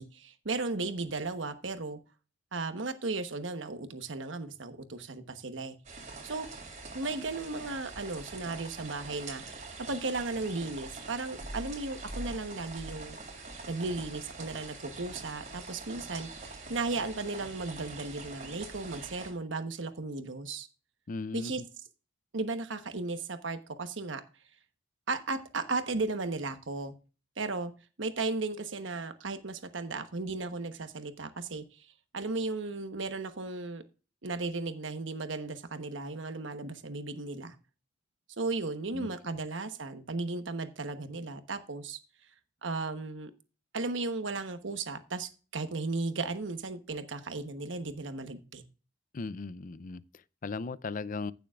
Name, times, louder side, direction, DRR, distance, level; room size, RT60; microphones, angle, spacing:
voice 1, 0.0-2.0 2.5-6.5 6.9-13.2 13.7-20.7 21.3-21.6 22.3-24.2 25.1-26.9 27.4-27.7 28.0-33.8 34.2-37.5 38.4-42.0 42.6-43.3 43.7-48.6, right 3 dB, 85° right, 1.1 m, -35 dB
sound 1, 5.8-19.3, right 3 dB, 40° right, 3.0 m, -44 dB
voice 2, 21.1-21.6 38.9-39.1 49.1-51.3, left 3 dB, 45° left, 0.5 m, -37 dB
15.5 x 7.0 x 2.4 m
head